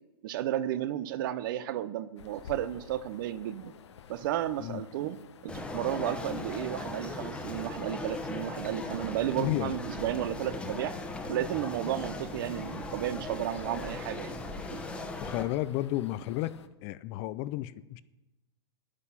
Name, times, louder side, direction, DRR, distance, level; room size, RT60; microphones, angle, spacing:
voice 1, 0.2-3.7 4.1-11.0 11.3-14.3 14.7-14.8, right 12 dB, 50° right, 16 dB, 0.7 m, -33 dB
sound 1, 2.2-16.7, left 8 dB, 80° left, 1.0 m, -52 dB
sound 2, 5.5-15.4, left 2 dB, 5° left, 1.1 m, -38 dB
voice 2, 9.4-9.8 15.2-16.5 16.8-18.0, left 15 dB, 30° left, 16 dB, 0.4 m, -32 dB
10.5 x 9.8 x 5.8 m, 1.0 s
hypercardioid pair, 145°, 14 cm